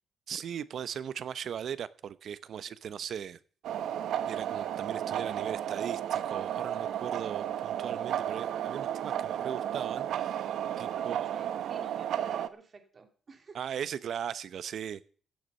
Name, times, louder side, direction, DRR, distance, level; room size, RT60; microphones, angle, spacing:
voice 1, 0.3-3.4 4.3-10.5 10.8-11.3 13.5-15.1, right 8 dB, 60° right, 0.8 m, -38 dB
sound 1, 3.6-12.5, right 10 dB, 85° right, 0.9 m, -33 dB
voice 2, 11.0-13.6, right 4 dB, 35° right, 2.7 m, -49 dB
16.0 x 9.4 x 5.4 m
cardioid pair, 160°, 0 cm